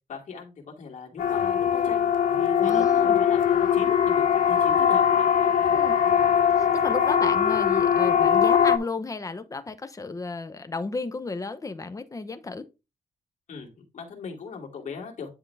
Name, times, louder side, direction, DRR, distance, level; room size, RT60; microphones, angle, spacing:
voice 1, 0.1-5.7 6.0-6.4 13.5-15.3, left 5 dB, 60° left, 2.7 m, -39 dB
Siren, 1.2-8.8, left 8 dB, 80° left, 0.8 m, -21 dB
voice 2, 2.6-3.2 5.7-6.0 6.5-12.6, left 3 dB, 25° left, 0.9 m, -33 dB
10.0 x 3.8 x 3.5 m
cardioid pair, 105°, 14 cm